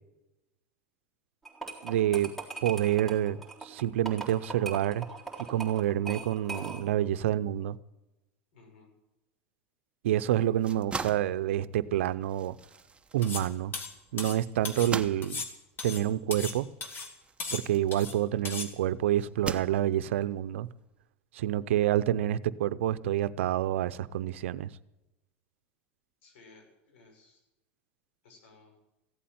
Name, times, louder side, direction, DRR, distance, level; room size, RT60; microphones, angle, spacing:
sound 1, 1.4-7.0, right 3 dB, 5° left, 3.9 m, -40 dB
voice 1, 1.8-2.3 2.6-5.1 5.5-7.8 10.0-12.6 13.1-13.7 14.1-15.4 15.8-16.7 17.5-20.7 21.3-24.7, right 12 dB, 85° right, 0.6 m, -28 dB
voice 2, 8.5-8.9 26.2-27.4 28.2-28.7, left 3 dB, 80° left, 6.2 m, -57 dB
sound 2, 10.4-18.5 19.2-20.2, right 4 dB, 15° right, 0.9 m, -41 dB
sound 3, 13.2-13.5 13.7-14.9 15.2-16.6 16.8-17.1 17.4-18.1 18.4-18.7, left 4 dB, 30° left, 2.2 m, -37 dB
15.5 x 8.6 x 9.3 m
supercardioid pair, 110°, 7 cm